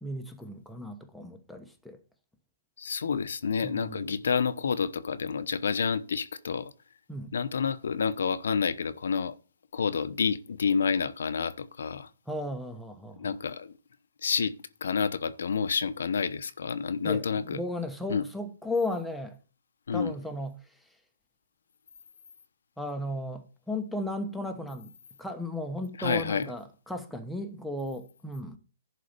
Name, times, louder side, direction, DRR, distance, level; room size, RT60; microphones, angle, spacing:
voice 1, 0.0-2.0 3.6-4.2 7.1-7.3 12.3-13.4 17.0-19.4 19.9-20.8 22.8-24.9 25.2-28.6, left 1 dB, ahead, 1.1 m, -35 dB
voice 2, 2.8-6.7 7.3-9.4 9.7-12.1 13.2-13.7 14.2-14.5 14.8-17.6 18.1-18.2 19.9-20.1 26.0-26.5, left 6 dB, 75° left, 0.9 m, -29 dB
11.0 x 4.2 x 6.7 m
hypercardioid pair, 155°, 0 cm